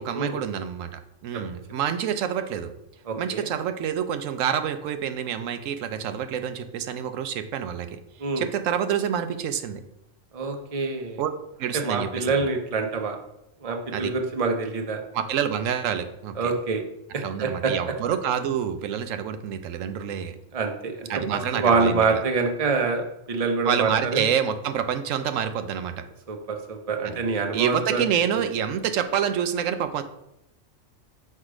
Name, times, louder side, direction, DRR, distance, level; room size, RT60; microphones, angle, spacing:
voice 1, 0.0-2.7 3.2-8.0 8.4-9.8 11.2-11.3 11.6-12.3 13.9-14.1 15.1-16.5 17.2-20.3 21.1-22.2 23.6-25.9 27.5-30.0, right 8 dB, 90° right, 9 dB, 1.0 m, -27 dB
voice 2, 3.1-3.5 8.2-8.5 10.3-11.2 11.7-13.2 13.6-15.0 16.4-16.8 17.1-17.7 20.5-21.2 21.5-24.3 26.3-28.0, right 4 dB, 35° right, 3 dB, 0.8 m, -26 dB
6.5 x 4.8 x 4.9 m, 0.85 s
omnidirectional pair, 1.3 m